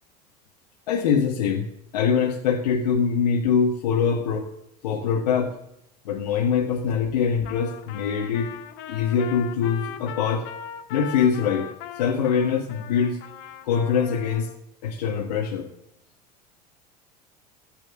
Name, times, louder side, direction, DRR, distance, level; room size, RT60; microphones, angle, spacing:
voice 1, 0.9-1.7 1.9-4.5 4.8-5.5 6.0-8.5 8.9-10.5 10.9-11.7 11.9-13.2 13.6-14.5 14.8-15.7, left 6 dB, 80° left, 0 dB, 1.6 m, -23 dB
Trumpet, 7.4-14.6, left 10 dB, 60° left, 1.6 m, -39 dB
14.5 x 8.3 x 6.4 m, 0.80 s
hypercardioid pair, 80°, 21 cm